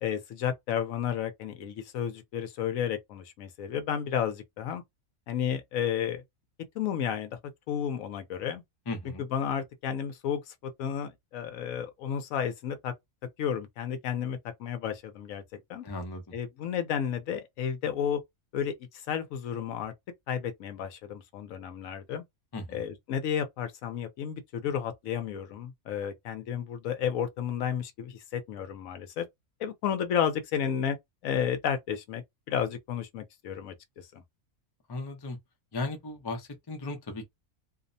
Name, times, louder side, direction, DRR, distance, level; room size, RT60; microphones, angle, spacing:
voice 1, 0.0-4.8 5.3-6.2 6.8-7.4 7.7-8.6 9.2-12.9 13.4-15.8 16.3-18.2 18.5-19.9 20.3-22.2 22.7-29.3 29.6-31.0 31.2-34.2, left 8 dB, 70° left, 0.9 m, -32 dB
voice 2, 8.9-9.2 15.8-16.2 22.5-22.8 34.9-35.4 35.7-37.2, left 2 dB, 30° left, 0.4 m, -36 dB
2.7 x 2.0 x 2.5 m
omnidirectional pair, 1.5 m